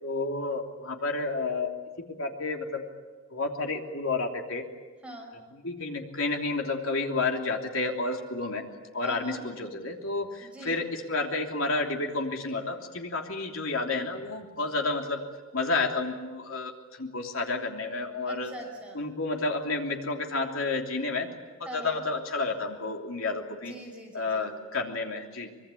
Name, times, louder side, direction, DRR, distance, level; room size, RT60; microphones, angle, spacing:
voice 1, 0.0-1.7 2.2-2.8 3.3-4.6 5.5-8.6 8.9-15.2 15.5-18.5 18.9-21.3 21.7-23.7 24.1-25.5, left 3 dB, 75° left, 2 dB, 3.2 m, -30 dB
voice 2, 5.0-5.4 9.0-9.4 10.4-10.8 18.2-19.0 21.7-22.0 23.5-24.5, right 1 dB, 5° right, 0 dB, 5.6 m, -43 dB
25.0 x 22.5 x 8.5 m, 1.4 s
head